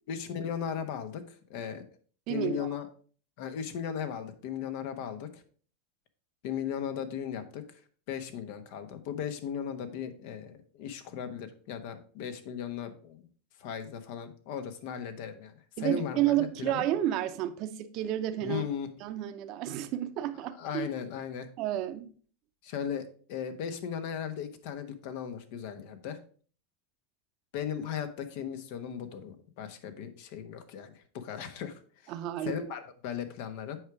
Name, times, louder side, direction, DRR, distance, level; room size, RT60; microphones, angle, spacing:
voice 1, 0.1-1.8 2.3-2.9 3.4-5.4 6.4-7.6 8.1-13.3 13.6-16.8 18.4-18.9 20.6-21.5 22.6-26.2 27.5-32.1 32.4-33.8, left 8 dB, 65° left, 1.1 m, -37 dB
voice 2, 2.3-2.7 15.8-18.6 19.0-20.9 21.6-22.1 32.1-32.6, right 12 dB, 50° right, 0.8 m, -31 dB
7.9 x 4.9 x 4.7 m
supercardioid pair, 115°, 0 cm